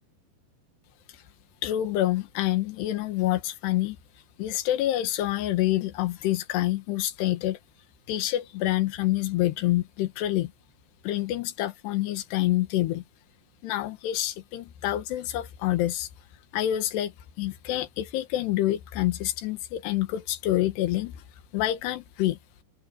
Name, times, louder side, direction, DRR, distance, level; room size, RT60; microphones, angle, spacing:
voice 1, 1.6-4.0 4.4-7.6 8.1-10.5 11.0-13.0 13.6-16.1 16.5-17.1 17.4-21.2 21.5-22.4, left 14 dB, 85° left, 3.4 m, -27 dB
open air
omnidirectional pair, 4.8 m